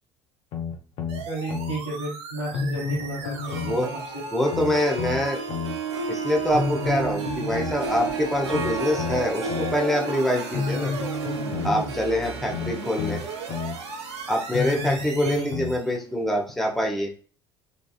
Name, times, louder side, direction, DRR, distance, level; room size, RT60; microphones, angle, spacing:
sound 1, 0.5-1.8 2.5-3.8 4.5-5.8 6.5-7.8 8.5-9.8 10.5-11.8 12.5-13.8 14.5-15.8 16.5-16.6, left 5 dB, 50° left, 0.7 m, -30 dB
sound 2, 1.1-16.0, right 4 dB, 50° right, 0.7 m, -38 dB
voice 1, 1.2-4.2 11.5-11.9, right 2 dB, 85° left, -5 dB, 1.3 m, -33 dB
Harp, 3.3-16.2, right 4 dB, 75° right, 0.4 m, -34 dB
voice 2, 4.3-5.4 6.1-10.9 11.6-13.2 14.3-17.1, equal, ahead, 0 dB, 0.8 m, -25 dB
3.6 x 2.5 x 2.3 m, 0.40 s
figure-of-eight pair, 60°, 14 cm